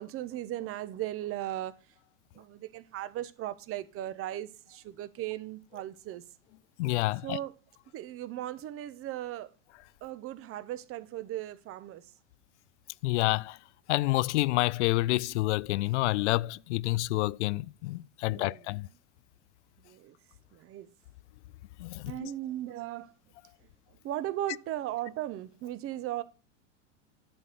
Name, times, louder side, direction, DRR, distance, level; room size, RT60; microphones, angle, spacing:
voice 1, 0.0-1.7 2.3-6.2 7.2-7.5 7.9-9.5 10.0-12.1 18.2-18.7 19.8-20.1 20.5-20.9 22.1-23.1 24.0-26.2, right 13 dB, 35° right, 1.0 m, -37 dB
voice 2, 6.8-7.4 13.0-13.6 13.9-18.9 21.8-22.3, left 19 dB, 70° left, 0.5 m, -28 dB
11.5 x 4.2 x 8.0 m
hypercardioid pair, 105°, 37 cm